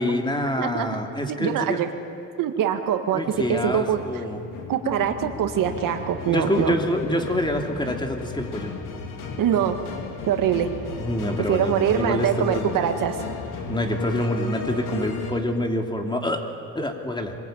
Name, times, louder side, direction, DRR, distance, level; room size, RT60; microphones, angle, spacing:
voice 1, 0.0-1.8 3.1-4.4 6.3-8.7 11.0-12.9 13.7-16.4 16.7-17.4, left 1 dB, 15° left, 3 dB, 2.8 m, -26 dB
voice 2, 0.6-0.9 1.4-1.9 2.4-3.2 3.5-4.0 4.7-6.8 9.4-9.8 10.3-10.7 11.5-13.2, right 9 dB, 80° right, 7 dB, 1.7 m, -23 dB
sound 1, 3.3-15.3, left 4 dB, 75° left, 3.2 m, -35 dB
23.5 x 21.0 x 9.2 m, 2.6 s
cardioid pair, 95°, 32 cm